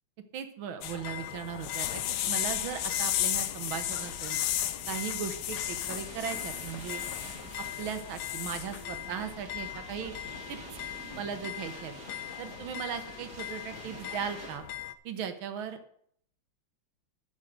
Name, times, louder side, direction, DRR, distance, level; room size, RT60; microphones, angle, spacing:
voice 1, 0.3-4.4 4.9-7.0 7.6-10.1 10.5-10.6 11.2-11.9 12.4-14.6 15.1-15.8, right 8 dB, 90° right, 8 dB, 1.8 m, -38 dB
sound 1, 0.8-14.9, left 12 dB, 70° left, 1.0 m, -35 dB
sound 2, 2.4-11.1, equal, 20° right, 0.9 m, -52 dB
sound 3, 4.6-14.6, right 3 dB, 60° right, 2.2 m, -49 dB
7.4 x 7.3 x 6.6 m, 0.66 s
omnidirectional pair, 2.1 m